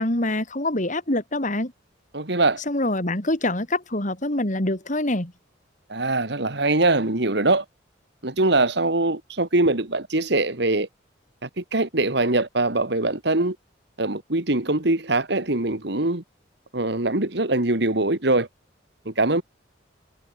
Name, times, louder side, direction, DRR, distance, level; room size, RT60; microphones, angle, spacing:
voice 1, 0.0-1.7 2.6-5.3, left 1 dB, 40° left, 3.5 m, -25 dB
voice 2, 2.1-2.6 5.9-7.6 8.2-10.9 11.4-13.6 14.0-16.2 16.7-18.5 19.1-19.4, right 2 dB, 60° right, 2.3 m, -22 dB
head